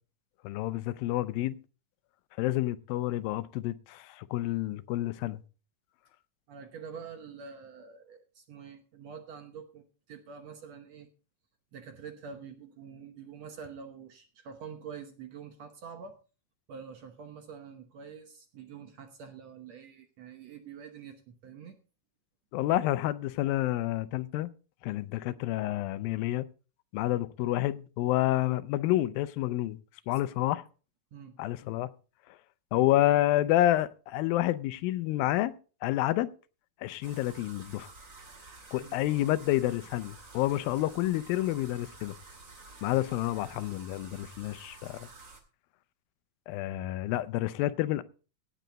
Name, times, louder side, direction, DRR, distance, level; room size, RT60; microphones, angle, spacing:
voice 1, 0.4-1.6 2.4-5.4 22.5-24.5 24.8-26.5 26.9-29.8 30.1-30.6 31.4-31.9 32.7-35.5 35.8-36.3 36.8-37.9 38.7-42.2 42.8-45.1 46.5-48.0, left 15 dB, 85° left, 2.4 m, -29 dB
voice 2, 6.5-11.1 11.7-16.2 16.7-21.8 30.1-30.5 31.1-31.4 38.8-39.0, right 6 dB, 65° right, 1.8 m, -46 dB
sound 1, 37.0-45.4, right 3 dB, 30° right, 2.0 m, -51 dB
17.0 x 8.2 x 3.9 m
omnidirectional pair, 4.1 m